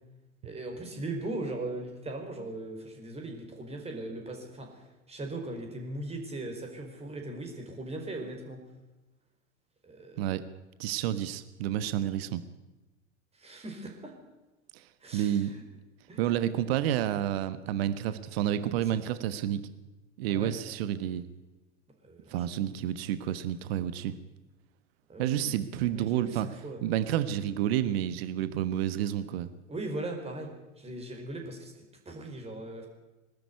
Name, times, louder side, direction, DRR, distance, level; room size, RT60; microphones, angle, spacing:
voice 1, 0.4-8.6 9.8-10.3 13.3-14.1 15.0-15.6 16.1-16.3 18.8-19.0 20.3-20.5 22.0-22.9 25.1-25.6 25.9-26.9 29.7-32.9, right 2 dB, 15° right, 3 dB, 4.9 m, -39 dB
voice 2, 10.8-12.4 14.7-14.8 15.1-15.5 16.2-19.7 20.2-21.3 22.3-24.1 25.2-29.5, right 11 dB, 50° right, 13 dB, 1.3 m, -30 dB
22.5 x 12.5 x 9.5 m, 1.1 s
figure-of-eight pair, 85°, 38 cm